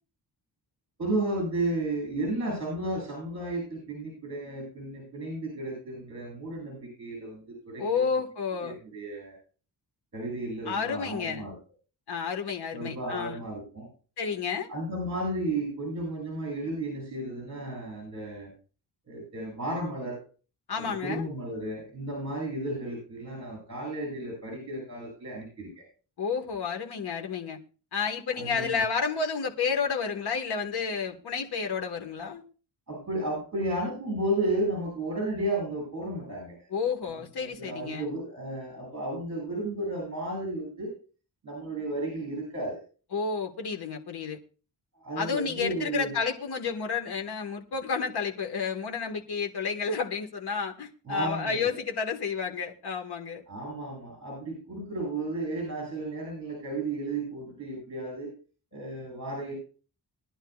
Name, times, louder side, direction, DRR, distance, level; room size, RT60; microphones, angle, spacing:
voice 1, 1.0-8.2 8.6-9.4 10.1-11.6 12.7-13.9 14.7-18.5 19.1-20.2 20.8-25.7 28.3-28.8 32.9-36.7 37.4-40.9 41.4-42.8 44.9-46.1 51.1-51.7 53.5-58.3 58.7-59.5, right 1 dB, 40° right, -1 dB, 7.9 m, -33 dB
voice 2, 7.8-8.8 10.7-11.5 12.1-13.4 14.2-14.7 20.7-21.3 26.2-27.6 27.9-32.4 36.7-38.1 43.1-44.4 45.2-53.4, left 5 dB, 65° left, 3 dB, 1.6 m, -31 dB
21.5 x 11.0 x 2.4 m, 0.37 s
wide cardioid pair, 165°, 41 cm